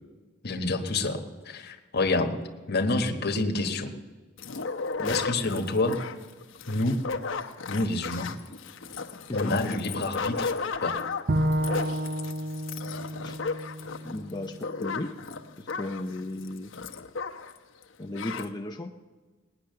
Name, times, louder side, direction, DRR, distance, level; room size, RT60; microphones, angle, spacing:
voice 1, 0.4-1.2 1.4-2.4 2.7-3.9 5.1-6.0 6.7-7.0 7.7-8.3 9.3-10.5 10.8-11.0, left 2 dB, 50° left, 4 dB, 1.3 m, -27 dB
sound 1, 4.4-17.6 17.8-17.9 18.1-18.5, left 4 dB, 70° left, 0.9 m, -34 dB
Bowed string instrument, 11.3-14.6, right 1 dB, 45° right, 0.6 m, -30 dB
voice 2, 14.0-15.1 15.6-16.7 18.0-18.9, left 1 dB, 20° left, 3 dB, 0.6 m, -35 dB
18.5 x 9.9 x 6.8 m, 1.4 s
head